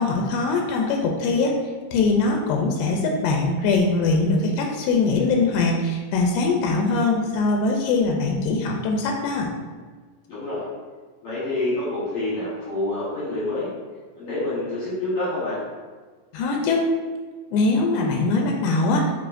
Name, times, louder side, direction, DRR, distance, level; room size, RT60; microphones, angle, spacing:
voice 1, 0.0-1.6 1.9-9.5 16.3-16.9 17.5-19.0, left 3 dB, 85° left, 1 dB, 2.5 m, -22 dB
voice 2, 10.3-10.6 11.2-13.7 14.1-15.6, left 2 dB, 65° left, -9 dB, 1.5 m, -27 dB
6.8 x 3.0 x 2.5 m, 1.4 s
omnidirectional pair, 4.4 m